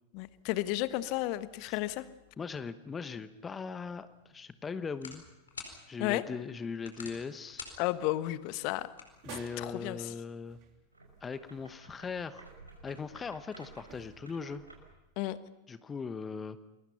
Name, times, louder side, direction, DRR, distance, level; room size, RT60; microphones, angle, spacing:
voice 1, 0.1-2.1 6.0-6.2 7.8-8.9 9.6-10.1 15.2-15.4, left 16 dB, 45° left, 14 dB, 1.2 m, -32 dB
voice 2, 2.4-5.2 5.9-7.7 9.2-10.6 11.2-12.5 12.8-14.6 15.7-16.6, left 5 dB, 20° left, 13 dB, 1.0 m, -39 dB
sound 1, 3.8-9.8, left 5 dB, 70° left, 4.6 m, -51 dB
sound 2, 9.2-11.3 11.6-11.7 13.9-14.9, right 9 dB, 40° right, 3.1 m, -52 dB
sound 3, 10.9-15.0, right 3 dB, 85° right, 5.7 m, -54 dB
29.0 x 22.0 x 5.8 m, 0.97 s
figure-of-eight pair, 90°, 0 cm